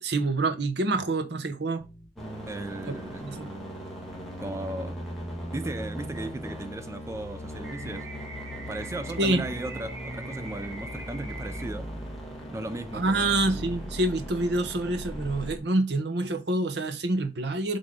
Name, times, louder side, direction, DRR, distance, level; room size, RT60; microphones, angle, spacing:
voice 1, 0.0-1.8 3.2-3.5 9.2-9.4 12.9-17.8, right 2 dB, 60° right, 0.9 m, -27 dB
sound 1, 1.8-3.6 4.0-6.7 7.0-9.6 10.0-12.6 13.0-13.7, equal, 30° left, 2.7 m, -52 dB
sound 2, 2.2-15.6, equal, ahead, 1.9 m, -38 dB
voice 2, 2.5-3.3 4.4-5.0 5.5-8.1 8.7-11.9 12.5-13.4, right 2 dB, 15° right, 0.3 m, -36 dB
sound 3, 7.6-11.6, right 3 dB, 90° right, 1.9 m, -43 dB
7.6 x 3.6 x 3.7 m
head